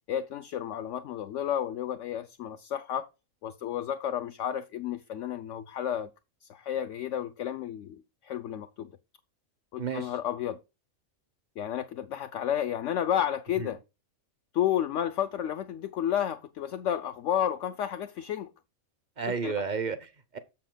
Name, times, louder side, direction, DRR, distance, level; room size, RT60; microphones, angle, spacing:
voice 1, 0.1-3.1 3.4-6.1 6.5-8.9 9.7-10.6 11.6-13.8 14.5-18.5 19.3-19.7, left 10 dB, 65° left, 0.9 m, -31 dB
voice 2, 9.8-10.1 13.6-13.7 19.2-20.4, right 5 dB, 40° right, 0.9 m, -32 dB
7.5 x 7.0 x 3.9 m
omnidirectional pair, 1.5 m